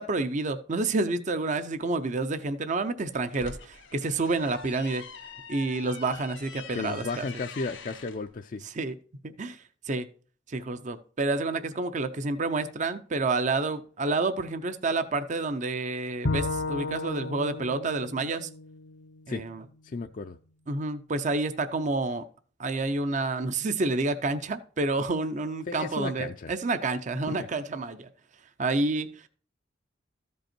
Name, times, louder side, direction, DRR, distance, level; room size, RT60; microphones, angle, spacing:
voice 1, 0.0-5.0 5.5-7.3 8.6-9.0 9.2-10.1 10.5-18.5 19.3-19.6 20.7-22.2 22.6-28.1 28.6-29.3, right 3 dB, 40° right, 0.6 m, -29 dB
sound 1, 3.1-8.2, left 5 dB, 85° left, 1.6 m, -44 dB
voice 2, 6.7-8.6 19.3-19.4 19.8-20.4 25.7-26.5, left 3 dB, 45° left, 0.4 m, -34 dB
Bowed string instrument, 16.2-19.5, left 3 dB, 65° left, 0.8 m, -34 dB
14.0 x 5.4 x 4.4 m
head